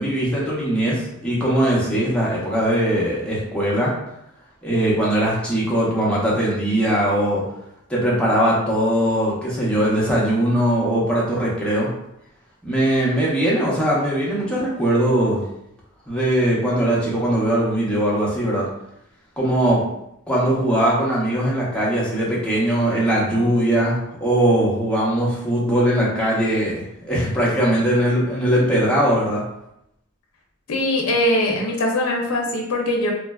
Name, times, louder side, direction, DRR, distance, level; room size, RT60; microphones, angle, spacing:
voice 1, 0.0-3.9 4.6-7.4 7.9-11.9 12.6-15.4 16.1-18.7 19.4-19.8 20.3-29.4, right 1 dB, 5° left, -6 dB, 0.7 m, -20 dB
voice 2, 30.7-33.1, left 1 dB, 75° left, 0 dB, 0.5 m, -21 dB
3.0 x 2.3 x 2.3 m, 0.78 s
head